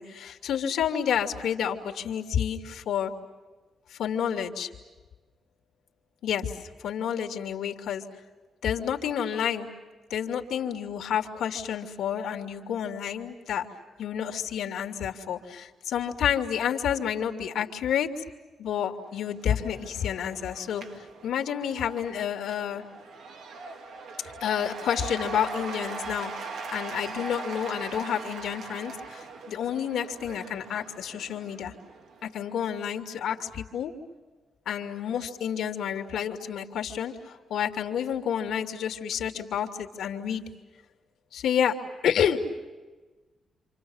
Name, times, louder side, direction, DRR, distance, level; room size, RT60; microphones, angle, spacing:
voice 1, 0.0-3.1 3.9-4.7 6.2-8.0 8.6-9.7 10.1-13.7 14.0-18.2 18.6-22.8 24.4-26.3 26.7-31.7 32.2-33.9 34.7-40.5 41.3-41.8 42.0-42.5, left 8 dB, 80° left, 5 dB, 2.7 m, -29 dB
Cheering / Applause / Crowd, 19.1-32.5, right 4 dB, 65° right, 2.4 m, -41 dB
29.0 x 27.5 x 7.2 m, 1.2 s
wide cardioid pair, 165°, 0 cm